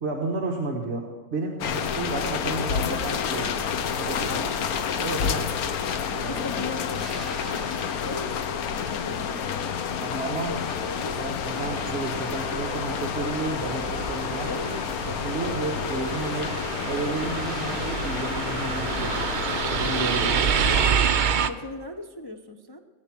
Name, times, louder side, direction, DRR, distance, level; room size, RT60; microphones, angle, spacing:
voice 1, 0.0-3.6 4.0-4.3 5.0-5.5 6.2-6.4 10.0-10.6 11.2-14.5 15.1-16.5 16.9-20.4, right 3 dB, 50° right, 0 dB, 1.4 m, -32 dB
sound 1, 1.6-20.9, left 7 dB, 85° left, 1.3 m, -29 dB
voice 2, 4.3-4.7 6.3-11.9 14.5-14.9 21.5-22.8, left 2 dB, 35° left, 3 dB, 0.3 m, -38 dB
sound 2, 6.9-9.8 10.2-12.0 17.3-18.8 21.4-21.5, right 1 dB, ahead, 3.8 m, -48 dB
sound 3, 11.6-21.5, right 7 dB, 70° right, 0.4 m, -28 dB
18.0 x 8.3 x 6.0 m, 1.4 s
omnidirectional pair, 1.5 m